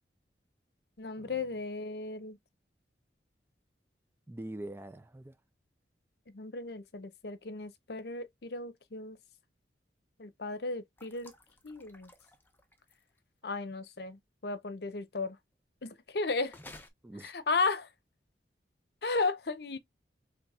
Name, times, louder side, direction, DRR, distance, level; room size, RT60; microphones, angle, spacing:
voice 1, 1.0-2.4 6.3-9.2 10.2-11.3 11.6-12.1 13.4-15.4 15.8-16.6 17.2-17.9 19.0-19.8, left 3 dB, 65° left, 0.7 m, -35 dB
voice 2, 4.3-5.4 17.0-17.3, right 1 dB, 15° right, 0.3 m, -44 dB
sound 1, 11.0-13.2 16.5-16.9, left 2 dB, 10° left, 0.7 m, -53 dB
5.6 x 3.3 x 2.3 m
head